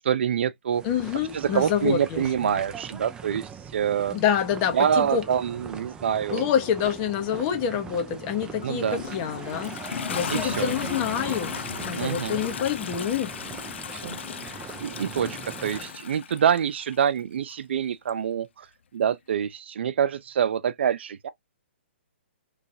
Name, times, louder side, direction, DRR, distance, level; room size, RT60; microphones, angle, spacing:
voice 1, 0.0-0.8 1.3-4.1 4.7-6.5 8.6-9.0 10.3-10.7 11.9-12.4 13.9-14.2 14.5-18.7 18.9-21.3, right 8 dB, 65° right, 0.7 m, -26 dB
sound 1, 0.7-15.9, right 6 dB, 10° right, 0.5 m, -40 dB
voice 2, 0.8-2.6 4.1-5.2 6.3-9.8 10.1-11.6 11.8-13.3, left 8 dB, 30° left, 1.1 m, -27 dB
Toilet flush, 8.6-17.0 18.1-18.2, left 7 dB, 70° left, 0.6 m, -36 dB
3.8 x 3.4 x 2.7 m
hypercardioid pair, 150°, 6 cm